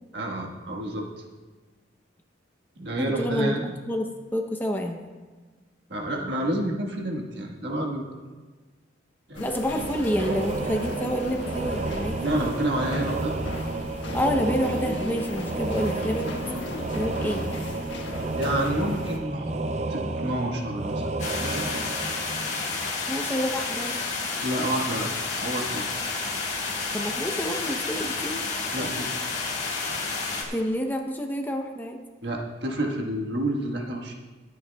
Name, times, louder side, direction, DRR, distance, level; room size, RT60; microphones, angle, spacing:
voice 1, 0.1-1.0 2.8-3.7 5.9-8.1 9.3-9.5 12.2-13.4 16.4-16.6 18.4-19.5 19.9-21.1 21.4-21.8 24.4-26.1 28.7-29.2 32.2-34.1, right 1 dB, 60° right, 0 dB, 1.4 m, -29 dB
voice 2, 3.0-5.0 9.4-12.2 14.1-16.3 17.0-17.5 23.1-24.0 26.9-28.4 30.5-32.0, equal, 10° left, 3 dB, 0.7 m, -28 dB
sound 1, 9.3-19.2, left 1 dB, 75° left, 1.3 m, -36 dB
sound 2, 9.7-23.2, right 2 dB, 35° right, 0.5 m, -31 dB
sound 3, 21.2-30.4, left 4 dB, 35° left, 1.7 m, -30 dB
23.0 x 8.7 x 2.3 m, 1.4 s
head